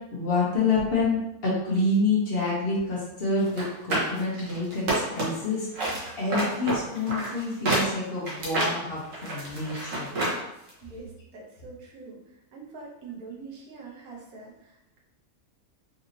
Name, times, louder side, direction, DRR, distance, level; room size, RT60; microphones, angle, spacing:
voice 1, 0.1-10.1, left 3 dB, 50° left, -5 dB, 0.9 m, -28 dB
sound 1, 3.5-5.5 5.7-10.4 10.7-10.8, right 1 dB, 65° right, 1.4 m, -28 dB
voice 2, 10.8-15.0, right 4 dB, 80° right, -3 dB, 1.3 m, -44 dB
4.0 x 2.6 x 2.7 m, 0.87 s
omnidirectional pair, 1.5 m